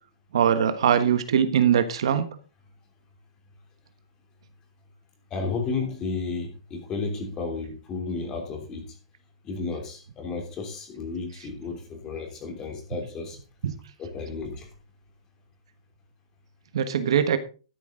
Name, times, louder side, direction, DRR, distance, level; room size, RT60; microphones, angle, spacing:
voice 1, 0.3-2.3 13.6-13.7 16.7-17.4, right 8 dB, 55° right, 11 dB, 1.3 m, -21 dB
voice 2, 5.3-8.8 9.4-13.4 14.0-14.7, left 4 dB, 15° left, 3 dB, 3.1 m, -32 dB
12.5 x 11.0 x 3.8 m, 0.35 s
hypercardioid pair, 170°, 3 cm